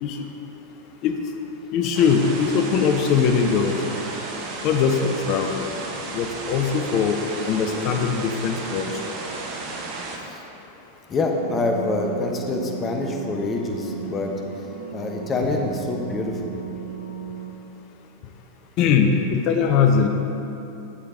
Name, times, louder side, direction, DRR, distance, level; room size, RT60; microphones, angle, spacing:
voice 1, 1.7-3.8 4.6-5.7 6.1-7.2 7.4-9.1 18.8-20.1, left 6 dB, 40° left, 5 dB, 0.6 m, -21 dB
sound 1, 1.9-10.2, right 3 dB, 40° right, 1.0 m, -33 dB
voice 2, 11.1-14.3 14.9-16.5, left 2 dB, 25° left, 2 dB, 1.0 m, -26 dB
sound 2, 11.3-17.5, right 7 dB, 75° right, 0.6 m, -35 dB
8.3 x 7.5 x 3.7 m, 2.9 s
figure-of-eight pair, 90°, 0 cm